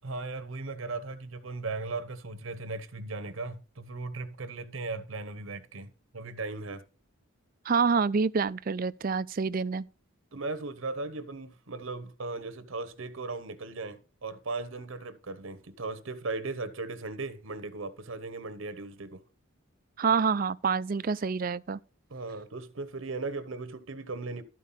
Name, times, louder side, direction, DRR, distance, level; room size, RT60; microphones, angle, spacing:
voice 1, 0.0-6.8 10.3-19.2 22.1-24.4, right 3 dB, 70° right, 1.0 m, -37 dB
voice 2, 7.7-9.9 20.0-21.8, right 5 dB, 40° right, 0.4 m, -27 dB
13.0 x 4.6 x 5.6 m
head